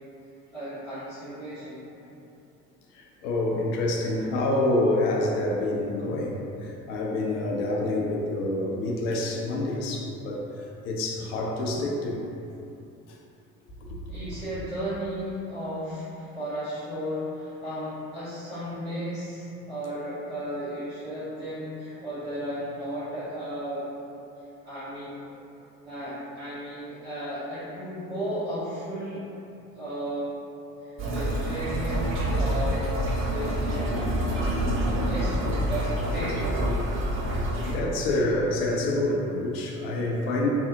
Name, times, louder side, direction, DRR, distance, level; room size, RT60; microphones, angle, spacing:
voice 1, 0.5-1.9 14.1-23.9 24.6-25.1 25.8-29.2 29.7-30.3 30.8-33.0 33.2-34.0 34.8-36.5, equal, 75° right, -18 dB, 1.5 m, -34 dB
voice 2, 2.9-12.2 13.9-14.4 37.6-40.5, left 2 dB, 60° left, -1 dB, 0.6 m, -27 dB
sound 1, 31.0-37.8, right 1 dB, 30° right, 0.5 m, -27 dB
3.3 x 2.0 x 2.8 m, 2.7 s
figure-of-eight pair, 60°, 41 cm